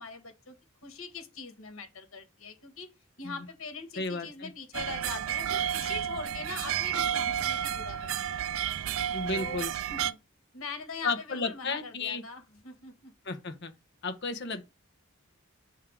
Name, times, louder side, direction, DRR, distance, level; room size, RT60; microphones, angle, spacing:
voice 1, 0.0-2.9 3.2-8.4 9.3-9.6 9.9-10.2 10.5-13.1, left 4 dB, 75° left, 1.7 m, -42 dB
voice 2, 4.0-4.5 9.1-9.7 11.0-12.2 13.2-13.7 14.0-14.7, left 3 dB, 55° left, 1.0 m, -33 dB
sound 1, 4.7-10.1, right 10 dB, 70° right, 0.4 m, -31 dB
6.3 x 3.8 x 4.9 m
head